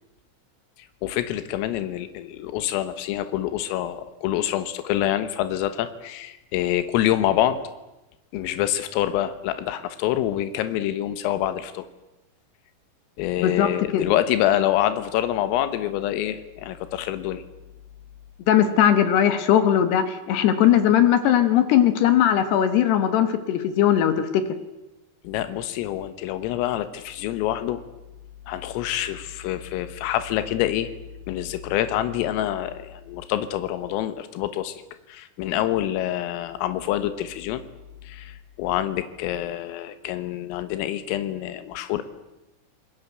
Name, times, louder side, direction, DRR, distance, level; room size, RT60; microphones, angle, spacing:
voice 1, 0.8-7.6 8.3-11.9 13.2-17.4 25.3-27.8 28.5-30.9 31.3-34.8 35.1-37.6 38.0-42.0, left 12 dB, 90° left, 11 dB, 3.9 m, -26 dB
voice 2, 13.4-14.1 18.5-24.4, left 10 dB, 65° left, 10 dB, 3.0 m, -19 dB
28.0 x 21.0 x 8.0 m, 0.99 s
omnidirectional pair, 5.8 m